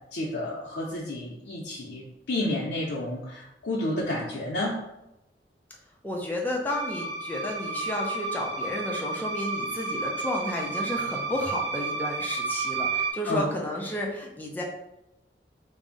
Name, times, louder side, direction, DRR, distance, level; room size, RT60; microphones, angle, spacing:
voice 1, 0.1-4.8 13.3-13.5, left 1 dB, 80° left, -5 dB, 0.5 m, -30 dB
voice 2, 6.0-14.6, left 1 dB, 10° left, -1 dB, 0.4 m, -32 dB
sound 1, 6.7-13.1, right 3 dB, 80° right, 0.4 m, -31 dB
2.5 x 2.0 x 3.7 m, 0.90 s
head